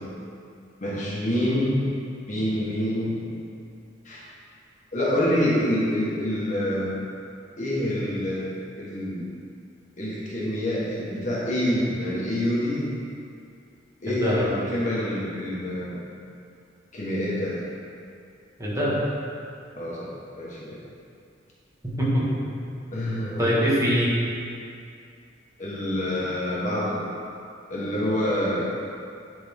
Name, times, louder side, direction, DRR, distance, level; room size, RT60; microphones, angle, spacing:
voice 1, 0.8-1.8 2.3-3.2 4.0-4.2 4.9-7.0 7.6-9.2 10.0-12.9 14.0-16.0 16.9-17.6 19.7-20.1 20.4-20.8 22.9-23.4 25.6-27.0 27.7-28.6, left 1 dB, 40° left, -7 dB, 1.4 m, -26 dB
voice 2, 14.1-14.5 18.6-19.0 21.8-22.5 23.4-24.1, equal, 15° right, -8 dB, 1.7 m, -23 dB
11.5 x 3.9 x 3.6 m, 2.4 s
head